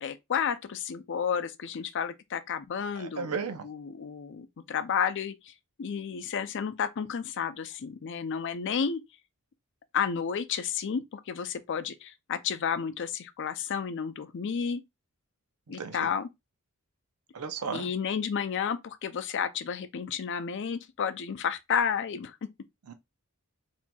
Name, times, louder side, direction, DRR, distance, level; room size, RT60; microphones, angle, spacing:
voice 1, 0.0-3.4 3.6-5.5 5.8-9.0 9.9-14.8 15.7-16.3 17.7-22.4, left 7 dB, 55° left, 0.4 m, -31 dB
voice 2, 2.9-3.7 15.8-16.1 17.3-17.9 22.9-23.0, right 5 dB, 85° right, 0.6 m, -34 dB
4.2 x 2.7 x 2.2 m
head